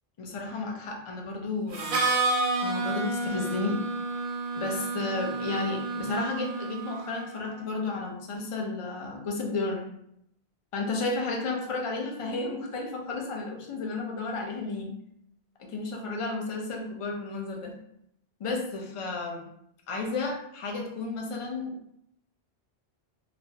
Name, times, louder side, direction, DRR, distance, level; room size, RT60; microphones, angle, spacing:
voice 1, 0.2-2.0 2.6-3.8 4.5-9.9 10.7-14.9 15.6-17.8 18.4-19.5 19.9-21.7, left 3 dB, 50° left, 0 dB, 0.4 m, -32 dB
Harmonica, 1.7-7.5, right 3 dB, 60° right, 0.6 m, -30 dB
3.0 x 2.0 x 2.7 m, 0.75 s
omnidirectional pair, 1.1 m